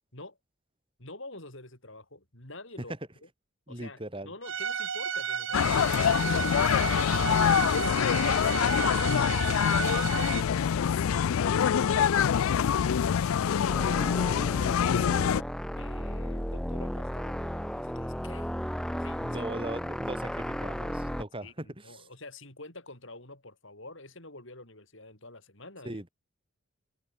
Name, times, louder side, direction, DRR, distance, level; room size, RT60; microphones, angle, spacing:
voice 1, 1.0-2.9 3.7-8.2 8.7-9.3 15.8-19.5 21.4-26.0, left 2 dB, 60° left, 6.3 m, -48 dB
voice 2, 3.7-4.3 19.2-22.1 25.8-26.1, right 1 dB, 25° right, 3.2 m, -39 dB
Bowed string instrument, 4.4-10.4, right 7 dB, 60° right, 1.4 m, -33 dB
sound 1, 5.5-15.4, left 8 dB, 75° left, 0.4 m, -25 dB
sound 2, 13.7-21.2, equal, 5° left, 1.4 m, -34 dB
head